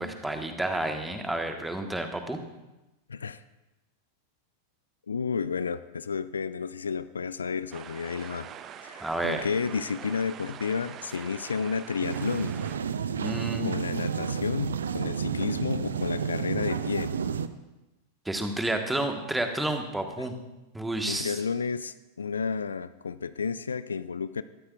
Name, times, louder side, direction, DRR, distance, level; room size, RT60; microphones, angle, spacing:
voice 1, 0.0-2.4 9.0-9.4 13.1-13.8 18.2-20.3 20.7-21.3, right 1 dB, 5° right, 5 dB, 1.5 m, -30 dB
voice 2, 3.1-3.4 5.1-8.5 8.8-12.6 13.1-13.2 13.6-17.1 21.1-24.4, left 5 dB, 70° left, 15 dB, 0.4 m, -31 dB
sound 1, 7.7-12.8, right 9 dB, 30° right, 0.7 m, -44 dB
sound 2, 12.0-17.5, right 7 dB, 70° right, 0.6 m, -31 dB
21.0 x 13.5 x 2.5 m, 1.0 s
figure-of-eight pair, 90°, 0 cm